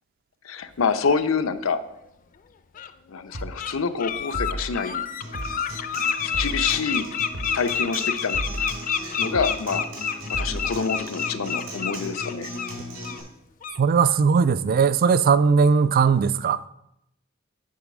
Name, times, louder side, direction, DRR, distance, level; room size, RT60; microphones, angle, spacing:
voice 1, 0.4-1.8 3.1-5.0 6.2-7.1 7.5-8.4 9.2-12.5, left 5 dB, 90° left, 0.6 m, -27 dB
Bird, 1.9-2.0 2.7-2.9 3.3-3.7 4.0-12.7 13.0-13.2 13.6-13.8, left 7 dB, 40° left, 0.4 m, -28 dB
sound 1, 3.3-3.6 4.3-4.7 5.3-5.6 6.3-6.7 7.3-7.6 8.3-8.7 9.3-9.6 10.3-10.7, right 1 dB, 70° right, 1.0 m, -32 dB
Acoustic guitar, 5.2-13.2, equal, 85° right, 3.7 m, -38 dB
voice 2, 13.8-16.7, right 5 dB, 45° right, 0.3 m, -19 dB
8.5 x 4.7 x 6.1 m
head